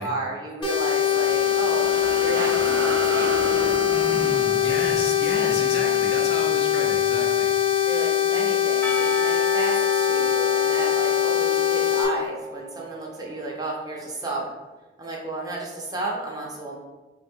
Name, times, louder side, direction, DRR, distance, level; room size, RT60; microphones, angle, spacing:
voice 1, 0.0-1.9 2.2-3.4 7.8-14.4 15.0-16.8, right 2 dB, 20° right, -2 dB, 0.7 m, -32 dB
sound 1, 0.6-12.0, left 10 dB, 30° left, 0.9 m, -22 dB
sound 2, 0.8-7.5, right 2 dB, 65° right, 0.4 m, -34 dB
voice 2, 3.9-7.5, left 2 dB, 65° left, 1 dB, 0.7 m, -32 dB
Percussion, 8.8-13.7, right 2 dB, 10° left, 0.4 m, -33 dB
3.6 x 2.3 x 4.3 m, 1.2 s
head